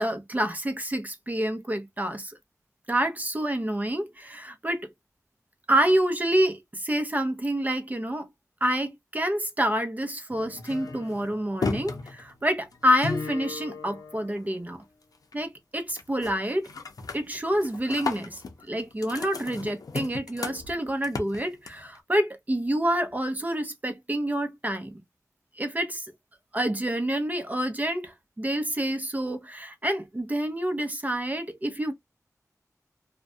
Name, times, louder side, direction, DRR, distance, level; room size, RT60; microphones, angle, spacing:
voice 1, 0.0-2.4 2.9-4.9 5.7-8.3 8.6-14.8 15.3-16.7 17.1-18.4 18.7-24.9 25.6-26.0 26.5-31.9, right 1 dB, 25° right, 0.7 m, -28 dB
sound 1, 10.3-14.8 15.1-15.6 15.9-16.3 16.6-22.0, left 4 dB, 80° left, 0.6 m, -36 dB
2.4 x 2.1 x 2.6 m
wide cardioid pair, 55°, 6 cm